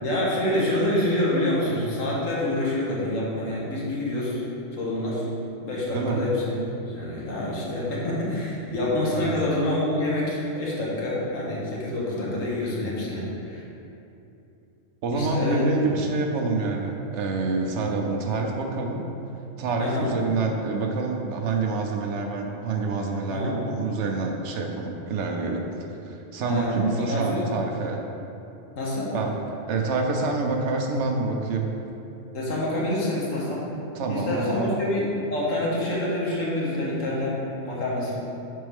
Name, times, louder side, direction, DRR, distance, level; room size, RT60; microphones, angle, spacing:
voice 1, 0.0-4.4 4.7-5.2 5.6-13.6 15.1-15.6 19.8-20.1 23.3-23.6 26.4-27.4 28.8-29.1 32.3-33.7 34.1-38.1, left 1 dB, 90° left, -5 dB, 1.6 m, -27 dB
voice 2, 15.0-19.1 19.6-25.6 26.0-28.0 29.1-29.3 29.7-31.7 33.9-34.7, right 3 dB, 70° right, 2 dB, 0.9 m, -27 dB
6.4 x 4.5 x 3.5 m, 2.8 s
omnidirectional pair, 1.3 m